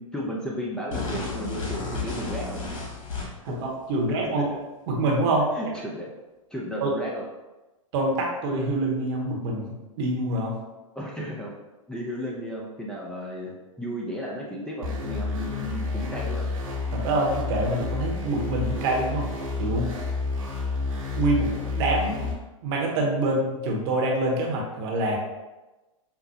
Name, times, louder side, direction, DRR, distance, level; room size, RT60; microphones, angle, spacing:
voice 1, 0.0-2.6 4.1-4.2 5.5-6.1 6.5-7.2 10.9-11.5 11.9-16.4, equal, 5° left, -4 dB, 0.6 m, -34 dB
sound 1, 0.9-3.6, left 3 dB, 65° left, 1.4 m, -32 dB
voice 2, 3.4-4.5 4.9-5.5 6.8-6.9 7.9-10.6 16.9-20.0 21.2-22.3 22.6-25.2, right 2 dB, 50° right, -1 dB, 1.0 m, -26 dB
sound 2, 14.8-22.3, left 3 dB, 85° right, 1.3 m, -30 dB
5.7 x 2.2 x 2.8 m, 1.1 s
hypercardioid pair, 105°, 17 cm